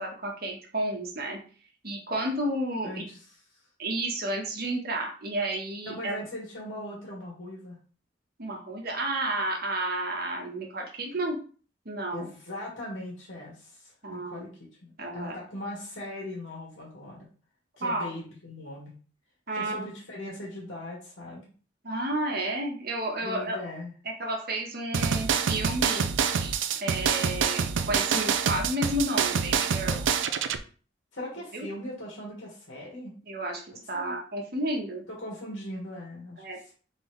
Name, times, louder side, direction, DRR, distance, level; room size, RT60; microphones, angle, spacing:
voice 1, 0.0-1.4 1.8-3.0 3.8-6.2 8.4-11.4 11.8-12.3 14.0-14.5 15.0-15.4 17.8-18.1 19.5-19.9 21.8-23.6 24.0-30.0 31.5-31.7 33.2-35.0 36.4-36.6, right 1 dB, 55° right, 0 dB, 1.2 m, -31 dB
voice 2, 2.8-3.2 3.5-3.6 5.8-7.8 12.1-17.3 17.8-18.9 19.5-21.5 23.2-23.9 31.1-33.2 33.9-34.1 35.1-36.7, left 1 dB, 85° left, -4 dB, 1.8 m, -40 dB
sound 1, 24.9-30.6, right 6 dB, 75° right, 0.4 m, -26 dB
3.9 x 3.8 x 3.2 m, 0.40 s
head